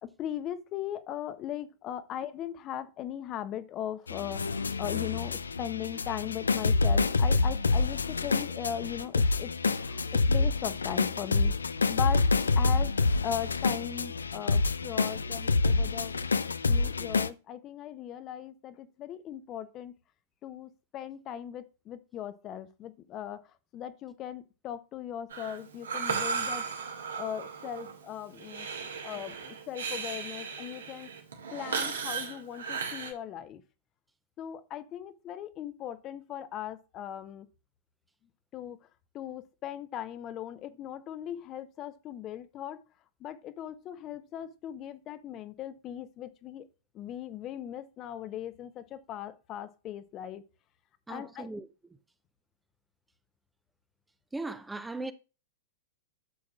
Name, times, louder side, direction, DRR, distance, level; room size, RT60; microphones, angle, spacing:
voice 1, 0.0-11.5 11.9-12.2 12.6-12.9 13.2-16.1 16.7-19.9 20.4-23.4 23.7-26.6 27.2-28.7 29.0-31.1 31.5-33.6 34.4-37.5 38.5-38.8 39.1-42.8 43.2-46.7 46.9-50.4 51.1-51.5, left 10 dB, 35° left, 0.8 m, -38 dB
sound 1, 4.1-17.3, left 3 dB, 80° left, 0.5 m, -27 dB
Breathing, 25.3-33.1, right 6 dB, 75° right, 2.0 m, -36 dB
voice 2, 51.1-51.7 54.3-55.1, right 2 dB, 5° right, 0.6 m, -37 dB
11.0 x 7.5 x 2.4 m
figure-of-eight pair, 100°, 0 cm